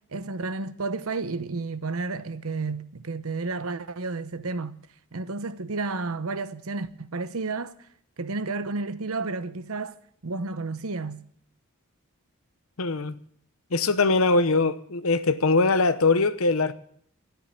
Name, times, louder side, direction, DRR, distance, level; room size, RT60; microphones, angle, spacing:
voice 1, 0.1-4.8 5.1-7.8 8.2-10.0 10.2-11.2, right 3 dB, 80° right, 0.9 m, -31 dB
voice 2, 12.8-13.2 13.7-16.7, left 3 dB, 75° left, 0.9 m, -22 dB
13.0 x 10.5 x 9.7 m
head